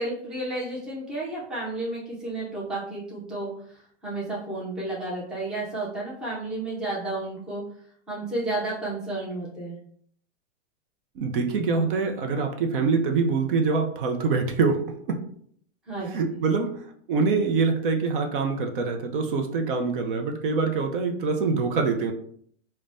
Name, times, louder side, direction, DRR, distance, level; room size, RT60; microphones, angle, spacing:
voice 1, 0.0-7.6 8.1-9.8 15.9-16.1, right 2 dB, ahead, -6 dB, 0.5 m, -32 dB
voice 2, 11.2-14.8 15.1-15.2 16.1-22.1, right 4 dB, 50° right, 4 dB, 0.6 m, -25 dB
5.0 x 2.2 x 2.5 m, 0.63 s
hypercardioid pair, 150°, 36 cm